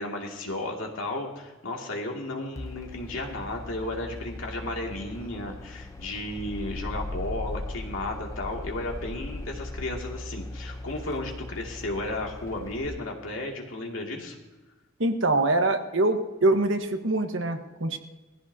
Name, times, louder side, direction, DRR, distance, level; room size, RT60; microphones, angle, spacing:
voice 1, 0.0-14.4, left 2 dB, 75° left, 0 dB, 2.4 m, -34 dB
sound 1, 2.6-12.8, left 1 dB, 15° left, 0.6 m, -38 dB
voice 2, 15.0-18.0, right 2 dB, 70° right, 6 dB, 1.3 m, -24 dB
19.5 x 15.0 x 2.8 m, 1.2 s
head